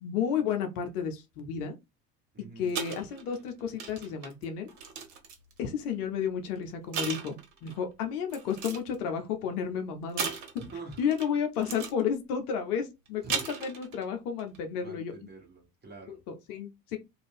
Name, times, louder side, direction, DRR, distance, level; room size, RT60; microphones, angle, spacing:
voice 1, 0.0-1.7 2.6-4.7 5.6-10.4 11.0-15.1 16.3-17.0, left 7 dB, 70° left, 0.8 m, -32 dB
voice 2, 2.3-2.7 10.6-11.0 13.2-13.4 14.8-16.2, right 3 dB, 20° right, 1.3 m, -45 dB
sound 1, 2.7-5.6 6.4-6.5 6.9-7.8 8.3-9.0 10.2-11.3 11.6-12.0 13.1-14.1 14.4-14.6, right 6 dB, 60° right, 1.0 m, -37 dB
2.5 x 2.3 x 3.4 m
figure-of-eight pair, 65°, 48 cm